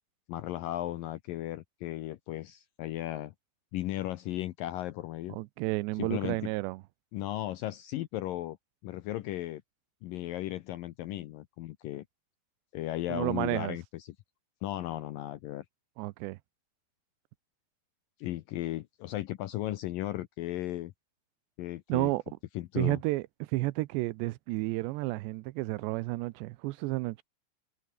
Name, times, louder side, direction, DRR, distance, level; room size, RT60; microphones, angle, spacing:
voice 1, 0.3-3.3 3.7-5.4 6.0-6.5 7.1-8.6 8.8-9.6 10.0-12.1 12.7-14.1 14.6-15.7 18.2-20.9 21.6-22.1 22.6-23.0, left 15 dB, 80° left, 2.1 m, -36 dB
voice 2, 5.3-6.8 13.1-13.8 16.0-16.4 21.9-22.2 22.8-27.2, right 20 dB, 90° right, 2.9 m, -31 dB
omnidirectional pair, 4.9 m